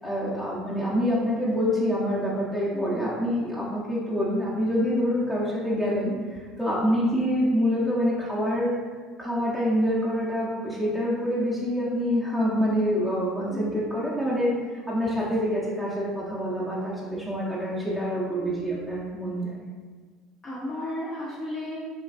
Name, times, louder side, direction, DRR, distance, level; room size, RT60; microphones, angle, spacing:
voice 1, 0.0-6.1 6.6-8.7 9.2-19.6, equal, 5° left, -9 dB, 0.9 m, -26 dB
voice 2, 2.7-3.1 7.0-7.3 13.5-13.8 18.3-18.8 20.4-21.8, left 1 dB, 35° left, -7 dB, 1.0 m, -35 dB
5.8 x 2.4 x 2.5 m, 1.5 s
hypercardioid pair, 70°, 0 cm